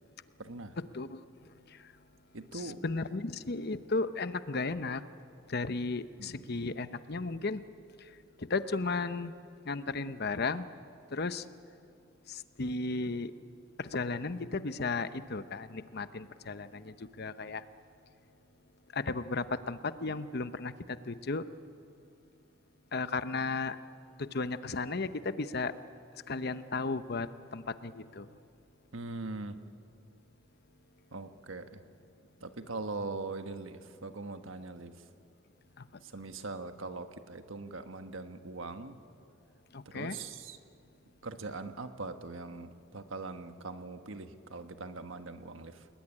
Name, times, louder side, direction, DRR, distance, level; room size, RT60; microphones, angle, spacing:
voice 1, 0.4-0.7 2.3-2.8 6.2-6.4 28.9-29.6 31.1-31.8 32.4-35.0 36.0-39.0 39.8-40.6 41.2-45.9, right 3 dB, 75° right, 8 dB, 1.4 m, -41 dB
voice 2, 2.5-5.0 5.5-7.6 8.4-9.3 9.7-10.6 11.1-11.4 12.3-13.3 13.8-17.6 18.9-21.4 22.9-23.8 24.2-25.7 26.3-28.3 35.8-35.9 39.7-40.2, left 3 dB, 50° left, 12 dB, 0.9 m, -34 dB
29.0 x 20.0 x 10.0 m, 2.5 s
head